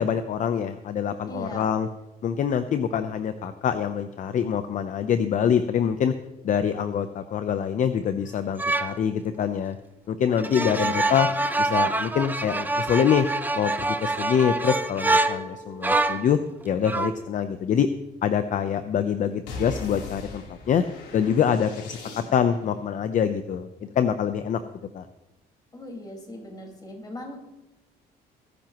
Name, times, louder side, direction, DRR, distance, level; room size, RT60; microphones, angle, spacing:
voice 1, 0.0-1.9 2.2-6.1 6.4-9.8 10.1-11.3 11.6-13.3 13.5-16.4 16.6-17.9 18.2-20.8 21.1-23.7 24.0-24.6 24.9-25.1, left 8 dB, 50° left, 10 dB, 0.7 m, -25 dB
voice 2, 1.3-1.7 10.3-11.3 25.7-27.4, equal, 25° left, 0 dB, 4.8 m, -39 dB
sound 1, 8.6-9.0 10.4-16.3 16.9-17.2, right 2 dB, 10° right, 0.8 m, -26 dB
sound 2, 19.5-22.7, left 2 dB, 85° left, 3.5 m, -39 dB
20.5 x 10.5 x 3.0 m, 0.99 s
cardioid pair, 110°, 17 cm